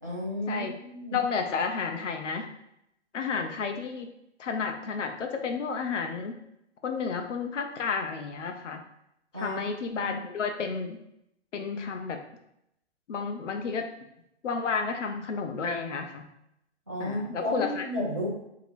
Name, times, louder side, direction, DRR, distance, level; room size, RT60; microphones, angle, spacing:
voice 1, 0.0-1.2 9.3-9.6 10.0-10.1 16.9-18.3, left 1 dB, 15° right, -8 dB, 0.5 m, -32 dB
voice 2, 1.1-2.5 3.1-4.1 4.4-6.4 6.8-8.8 9.3-11.0 11.5-12.2 13.1-13.9 14.4-16.3 17.0-17.9, left 5 dB, 90° left, 5 dB, 0.7 m, -31 dB
4.9 x 2.9 x 2.6 m, 0.80 s
hypercardioid pair, 175°, 36 cm